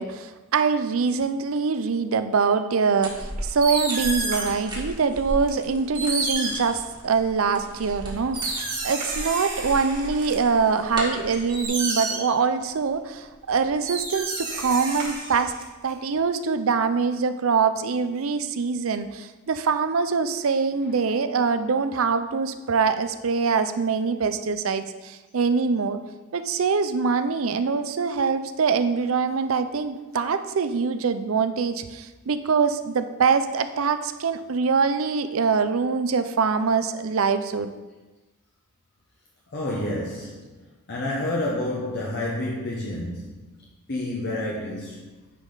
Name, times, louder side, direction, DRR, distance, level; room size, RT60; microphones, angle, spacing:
voice 1, 0.0-15.5 15.8-26.0 26.3-37.7, right 5 dB, 70° right, 10 dB, 0.5 m, -24 dB
sound 1, 3.0-11.7, right 1 dB, 20° right, 1.7 m, -37 dB
sound 2, 3.2-4.7 5.5-5.6 5.9-7.2 7.9-10.3 10.8-12.4 13.5-13.6 13.9-15.9, right 3 dB, 40° right, 2.0 m, -30 dB
voice 2, 39.5-45.0, left 1 dB, 50° left, -4 dB, 1.1 m, -30 dB
9.6 x 5.3 x 3.9 m, 1.1 s
head